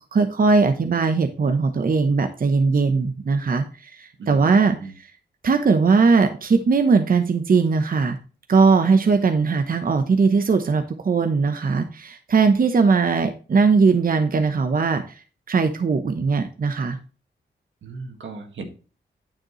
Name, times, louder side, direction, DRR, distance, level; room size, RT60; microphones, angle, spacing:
voice 1, 0.1-5.1 5.4-8.2 8.5-17.0, right 4 dB, 50° right, 7 dB, 0.8 m, -19 dB
voice 2, 4.2-4.9 17.8-18.7, right 3 dB, 85° right, 4 dB, 1.8 m, -36 dB
9.0 x 7.4 x 3.1 m, 0.36 s
cardioid pair, 75°, 19 cm